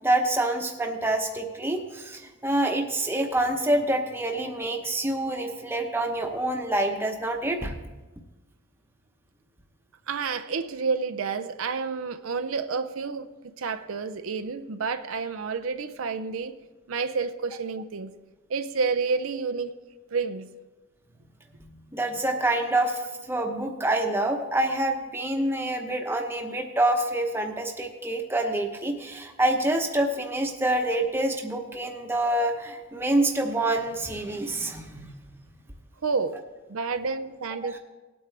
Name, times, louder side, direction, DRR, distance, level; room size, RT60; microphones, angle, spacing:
voice 1, 0.0-7.7 21.9-23.0 23.3-35.1, right 1 dB, 10° right, 0.9 m, -26 dB
voice 2, 10.1-16.6 16.9-18.1 18.5-19.7 20.1-20.5 36.0-36.4 36.7-37.8, right 5 dB, 85° right, 0.6 m, -29 dB
19.5 x 8.5 x 3.3 m
head